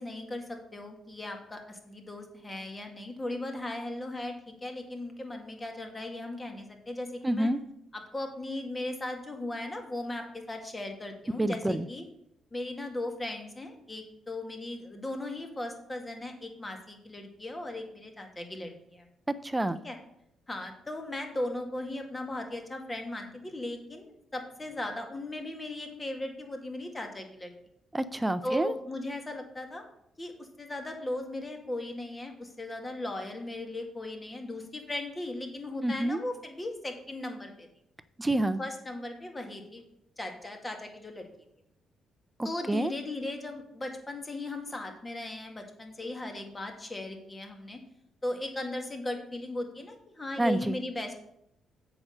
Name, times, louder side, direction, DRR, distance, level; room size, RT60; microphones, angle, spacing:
voice 1, 0.0-7.5 7.9-12.0 12.5-19.0 19.8-20.0 20.5-27.5 28.4-29.8 30.2-37.7 38.6-39.8 40.2-41.3 42.4-47.8 48.2-51.1, left 1 dB, 20° left, 4 dB, 2.0 m, -37 dB
voice 2, 7.2-7.6 11.4-11.9 19.3-19.8 27.9-28.7 35.8-36.2 38.2-38.6 42.4-42.9 50.4-50.8, right 1 dB, 15° right, 14 dB, 0.5 m, -28 dB
7.8 x 6.1 x 6.4 m, 0.76 s
cardioid pair, 90°, 0 cm